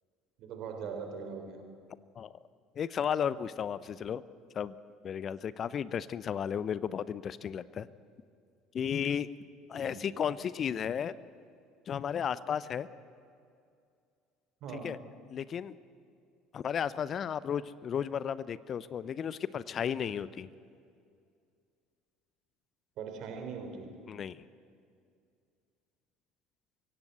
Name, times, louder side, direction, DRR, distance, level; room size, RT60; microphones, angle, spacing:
voice 1, 0.4-1.6 9.7-10.1 14.6-15.0 23.0-23.9, right 5 dB, 55° right, 5 dB, 3.6 m, -41 dB
voice 2, 2.8-4.2 4.5-4.7 5.0-7.9 8.7-9.3 9.7-11.1 11.9-12.9 14.8-15.0 15.3-15.8 16.5-20.5 24.1-24.4, left 8 dB, 40° left, 18 dB, 0.6 m, -34 dB
23.0 x 16.5 x 8.0 m, 2.3 s
figure-of-eight pair, 60°, 0 cm